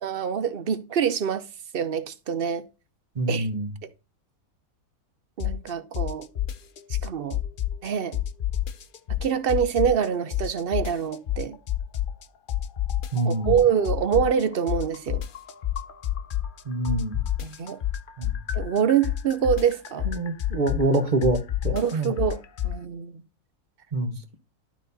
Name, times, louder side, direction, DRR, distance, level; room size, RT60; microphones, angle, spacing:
voice 1, 0.0-1.4 1.7-2.6 3.3-3.5 5.4-6.3 7.0-7.4 7.8-8.2 9.2-11.6 13.2-15.2 17.4-17.8 18.5-20.1 21.7-23.2, right 8 dB, 50° right, 0.8 m, -25 dB
voice 2, 3.1-3.7 13.1-13.6 16.6-17.2 18.2-18.4 20.0-22.2 23.9-24.2, right 2 dB, 35° right, 1.1 m, -26 dB
sound 1, 5.4-5.7 5.9-7.9 8.1-10.1 10.3-12.2 12.5-16.6 16.8-22.8, left 12 dB, 55° left, 0.6 m, -28 dB
12.0 x 4.1 x 4.1 m
omnidirectional pair, 1.6 m